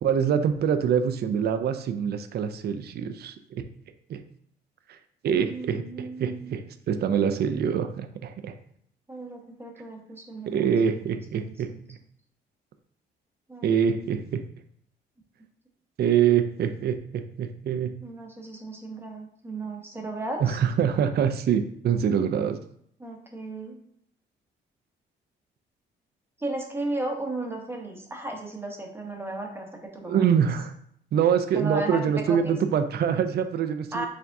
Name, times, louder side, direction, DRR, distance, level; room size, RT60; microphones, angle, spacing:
voice 1, 0.0-3.7 4.1-4.2 4.9-5.0 5.2-8.5 10.5-12.0 13.6-14.4 16.0-17.9 20.4-22.6 30.1-30.7 31.1-34.1, right 8 dB, 55° right, 9 dB, 0.5 m, -25 dB
voice 2, 5.3-6.6 9.1-11.0 11.4-11.8 13.5-13.8 18.0-20.6 23.0-23.8 26.4-30.2 31.5-32.6 33.9-34.1, right 2 dB, 10° right, 1 dB, 1.0 m, -35 dB
4.6 x 3.5 x 2.6 m, 0.68 s
cardioid pair, 90°, 20 cm